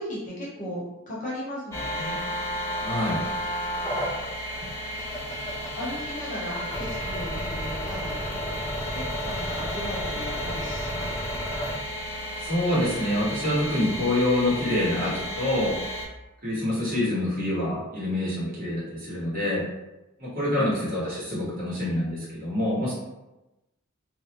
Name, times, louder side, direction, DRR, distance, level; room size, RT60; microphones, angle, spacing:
voice 1, 0.0-2.2 5.7-8.5 8.8-11.4, equal, 40° left, -6 dB, 0.8 m, -36 dB
sound 1, 1.7-16.1, equal, 15° left, 0.4 m, -32 dB
voice 2, 2.8-3.2 12.4-15.7 16.4-19.6 20.2-22.9, left 1 dB, 40° right, -8 dB, 1.1 m, -26 dB
2.5 x 2.0 x 2.8 m, 1.0 s
head